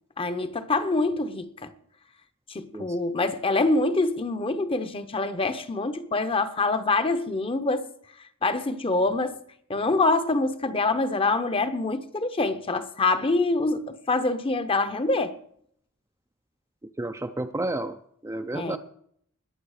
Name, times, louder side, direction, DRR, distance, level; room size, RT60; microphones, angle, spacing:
voice 1, 0.2-1.7 2.5-7.9 8.4-9.4 9.7-15.4 18.5-18.8, left 3 dB, 25° left, 0.8 m, -25 dB
voice 2, 16.8-18.0 18.2-18.8, right 2 dB, 15° right, 0.4 m, -31 dB
20.5 x 7.1 x 4.9 m
head